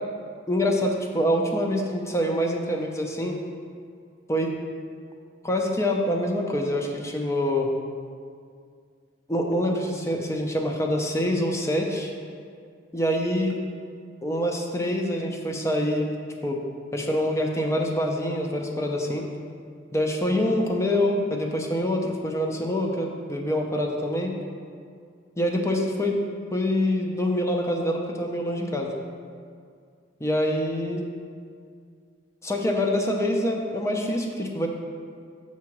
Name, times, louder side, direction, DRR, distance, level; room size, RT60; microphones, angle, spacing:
voice 1, 0.5-3.4 4.3-4.5 5.4-7.7 9.3-12.1 12.9-13.6 14.2-16.1 16.4-16.6 16.9-19.2 19.9-24.4 25.4-26.2 26.5-28.9 30.2-31.0 32.4-34.7, left 1 dB, 15° left, 1 dB, 0.6 m, -25 dB
7.2 x 2.9 x 5.9 m, 2.2 s
head